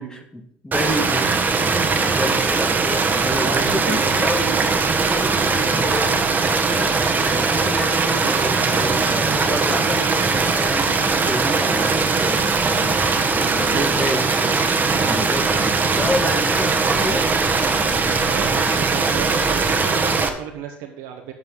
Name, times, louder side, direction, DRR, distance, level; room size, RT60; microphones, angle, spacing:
voice 1, 0.1-1.4 1.8-4.5 5.0-6.2 6.7-13.1 13.4-14.3 15.0-17.2, left 1 dB, 15° left, 4 dB, 1.8 m, -29 dB
sound 1, 0.7-20.3, right 4 dB, 30° right, 1.3 m, -20 dB
voice 2, 3.3-4.3 13.4-14.0 18.2-21.3, right 9 dB, 75° right, 2 dB, 1.0 m, -33 dB
9.1 x 8.0 x 3.8 m, 0.69 s
hypercardioid pair, 70°, 6 cm